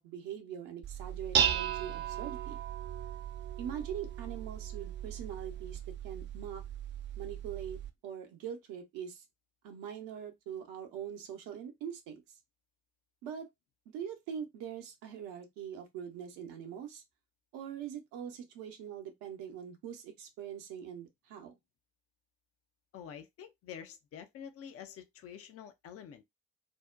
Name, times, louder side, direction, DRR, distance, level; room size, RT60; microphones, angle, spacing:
voice 1, 0.0-2.6 3.6-5.8 6.0-6.6 7.2-9.2 9.6-12.2 13.2-13.5 13.9-17.0 17.5-21.6, right 8 dB, 65° right, 0.8 m, -42 dB
Dishes pots and pans, 0.8-7.9, right 9 dB, 30° right, 0.4 m, -36 dB
voice 2, 22.9-26.2, left 8 dB, 40° left, 0.5 m, -48 dB
2.6 x 2.1 x 2.4 m
figure-of-eight pair, 40°, 36 cm